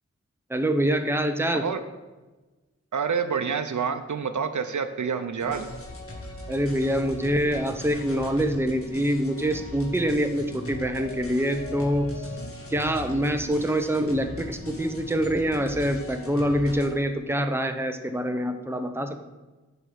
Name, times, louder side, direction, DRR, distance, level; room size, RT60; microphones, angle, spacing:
voice 1, 0.5-1.6 6.5-12.3 12.7-19.2, equal, 10° right, 6 dB, 0.8 m, -25 dB
voice 2, 2.9-5.7, right 6 dB, 85° right, 9 dB, 0.7 m, -28 dB
sound 1, 5.4-16.9, left 1 dB, 50° left, 1.5 m, -39 dB
8.0 x 5.5 x 6.4 m, 1.2 s
wide cardioid pair, 70°, 29 cm